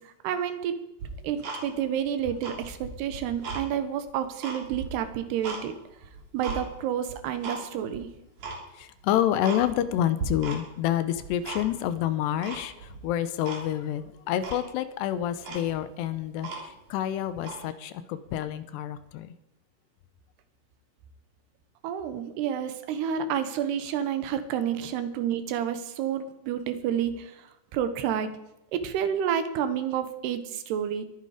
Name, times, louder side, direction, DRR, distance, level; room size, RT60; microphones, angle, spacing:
voice 1, 0.2-0.7 1.2-5.7 6.3-8.1 21.8-27.3 27.7-28.3 28.7-31.0, right 9 dB, 70° right, 10 dB, 3.0 m, -29 dB
Tick-tock, 1.0-2.0 2.3-3.6 4.1-5.6 6.0-6.6 7.1-7.6 7.9-8.0 8.4-8.6 9.0-9.1 9.4-9.9 10.2-10.8 11.1-11.9 12.4-13.0 13.4-13.6 14.0-14.1 14.4-14.7 15.1-15.2 15.4-16.9 17.4-17.6, right 4 dB, 45° right, 4.2 m, -37 dB
voice 2, 8.7-19.3, left 11 dB, 80° left, 13 dB, 2.7 m, -28 dB
22.5 x 9.9 x 5.0 m, 0.91 s
omnidirectional pair, 5.2 m